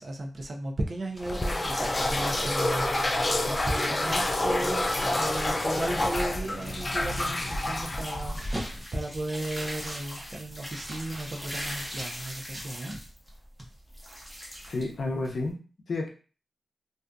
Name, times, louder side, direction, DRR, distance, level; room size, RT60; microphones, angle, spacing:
voice 1, 0.0-2.9 3.4-8.4 8.9-12.9, right 1 dB, 50° right, 2 dB, 0.5 m, -35 dB
sound 1, 0.9-2.9 3.4-3.5 3.8-5.1 5.3-12.2 12.5-13.3 13.6-13.7, right 1 dB, 25° right, 0.8 m, -45 dB
sound 2, 1.2-8.8, left 1 dB, 30° left, 0.3 m, -28 dB
sound 3, 6.5-15.5, equal, 5° left, 0.8 m, -41 dB
voice 2, 14.7-16.1, left 2 dB, 70° left, 1 dB, 0.6 m, -31 dB
2.6 x 2.4 x 2.3 m, 0.37 s
cardioid pair, 70°, 0 cm